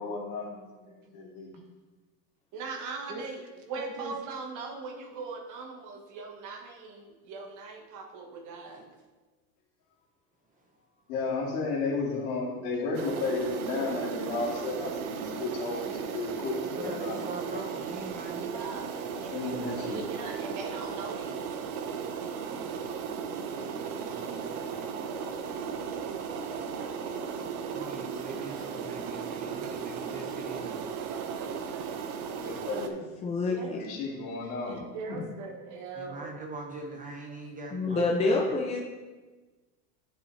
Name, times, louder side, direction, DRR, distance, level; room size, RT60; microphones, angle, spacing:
voice 1, 0.0-1.6 11.1-17.2 19.1-20.1 32.4-33.0 33.7-34.8 35.1-35.2, left 3 dB, 75° left, -2 dB, 2.4 m, -33 dB
voice 2, 2.5-8.9 18.4-21.4 33.5-34.0 34.6-36.3, right 4 dB, 45° right, 3 dB, 1.3 m, -40 dB
voice 3, 3.8-4.1 8.7-8.9 16.7-18.5 23.5-24.9 27.7-30.9 36.0-38.1, right 2 dB, 20° right, 2 dB, 0.7 m, -42 dB
sound 1, 12.9-32.9, right 6 dB, 80° right, 0.9 m, -36 dB
voice 4, 33.2-33.8 37.7-38.8, left 3 dB, 15° left, -1 dB, 0.4 m, -27 dB
9.3 x 5.5 x 3.2 m, 1.3 s
supercardioid pair, 140°, 43 cm